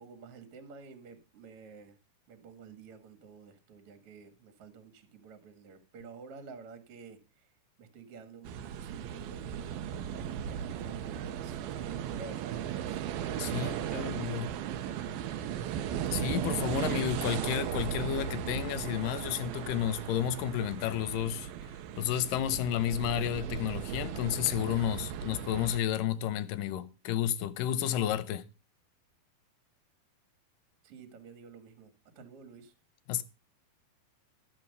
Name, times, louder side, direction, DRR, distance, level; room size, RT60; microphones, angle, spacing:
voice 1, 0.0-2.0 2.3-7.5 7.8-8.5 8.8-13.2 13.5-14.1 14.5-15.8 30.8-32.7, right 5 dB, 45° right, 2.3 m, -50 dB
sound 1, 8.5-25.8, right 9 dB, 80° right, 2.6 m, -36 dB
voice 2, 13.4-14.5 16.1-21.5 22.0-28.4 33.1-33.2, left 10 dB, 75° left, 2.1 m, -31 dB
13.5 x 7.6 x 5.4 m
omnidirectional pair, 4.5 m